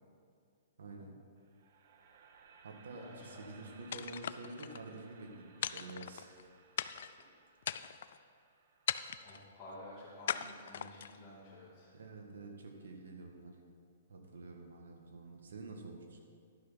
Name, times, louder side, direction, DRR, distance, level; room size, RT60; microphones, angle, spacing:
voice 1, 0.8-1.2 2.6-6.4 11.9-13.6 14.1-16.2, right 3 dB, 90° right, 3 dB, 1.6 m, -48 dB
sound 1, 1.4-11.5, right 5 dB, 45° right, 0.9 m, -63 dB
voice 2, 2.9-3.8 9.2-11.9, left 1 dB, 5° left, -14 dB, 2.6 m, -52 dB
sound 2, 3.9-4.8 5.6-6.4 6.8-7.2 7.6-8.2 8.9-9.4 10.3-11.2, left 9 dB, 55° left, 0.3 m, -39 dB
11.5 x 6.3 x 5.6 m, 2.3 s
hypercardioid pair, 170°, 0 cm